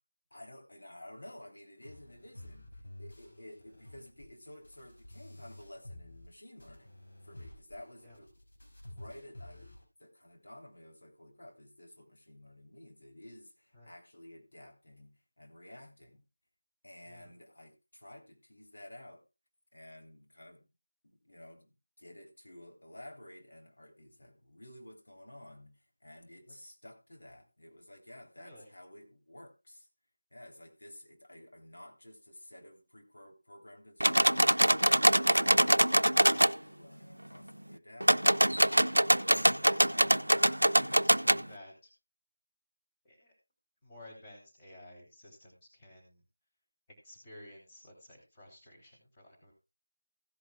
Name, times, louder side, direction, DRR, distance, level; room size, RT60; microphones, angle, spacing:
voice 1, 0.3-2.7 3.0-6.9 7.2-8.3 8.6-16.2 16.8-19.2 19.7-20.6 21.0-29.9 30.3-38.4, left 1 dB, 55° left, 2 dB, 3.2 m, -53 dB
sound 1, 1.8-6.3 6.6-9.8, left 1 dB, 40° left, 5.1 m, -51 dB
voice 2, 28.4-28.7 39.3-40.4 40.8-41.9 43.0-43.3 43.8-46.2 47.0-49.5, left 1 dB, 15° left, -3 dB, 3.1 m, -53 dB
sound 2, 34.0-36.5 38.0-41.4, right 1 dB, 85° right, 0.5 m, -24 dB
16.0 x 11.0 x 2.3 m, 0.27 s
figure-of-eight pair, 165°, 0 cm